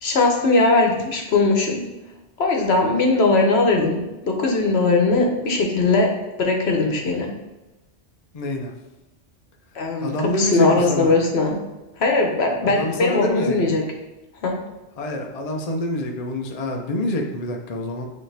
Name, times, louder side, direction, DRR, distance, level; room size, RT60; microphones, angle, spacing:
voice 1, 0.0-1.8 2.4-4.0 4.2-6.1 6.4-7.3 9.7-11.5 12.0-13.8 14.4-14.6, left 3 dB, 60° left, 2 dB, 1.1 m, -19 dB
voice 2, 8.3-8.7 10.0-11.1 12.6-13.8 15.0-18.1, left 1 dB, 40° left, 2 dB, 0.6 m, -26 dB
8.8 x 3.2 x 3.3 m, 1.1 s
omnidirectional pair, 1.2 m